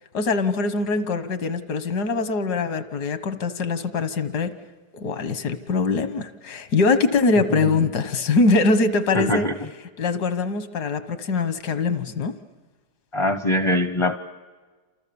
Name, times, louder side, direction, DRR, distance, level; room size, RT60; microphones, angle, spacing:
voice 1, 0.1-4.5 4.9-9.5 10.0-12.4, left 3 dB, 80° left, 11 dB, 1.7 m, -23 dB
voice 2, 7.5-7.9 9.1-9.5 13.1-14.2, left 1 dB, 30° left, 9 dB, 0.5 m, -23 dB
28.5 x 27.5 x 7.0 m, 1.4 s
omnidirectional pair, 1.7 m